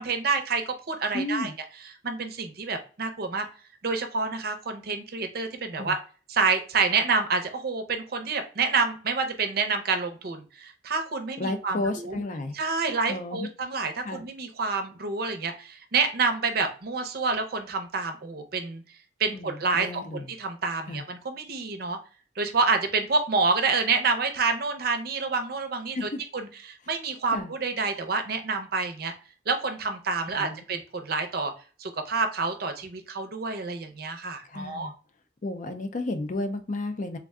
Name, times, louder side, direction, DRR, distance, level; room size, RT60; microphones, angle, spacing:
voice 1, 0.0-1.5 2.0-3.5 3.8-6.0 6.3-12.2 12.5-18.8 19.2-20.0 20.4-22.0 22.4-29.1 29.5-31.5 31.8-34.9, right 4 dB, 55° right, 6 dB, 0.6 m, -28 dB
voice 2, 1.1-1.5 5.8-5.9 11.4-12.6 13.1-13.5 14.0-14.2 19.3-20.3 20.9-21.0 25.9-26.2 27.3-27.5 30.3-30.7 34.5-34.9 35.4-37.2, left 2 dB, 45° left, 8 dB, 0.5 m, -32 dB
3.5 x 2.2 x 3.5 m, 0.37 s
head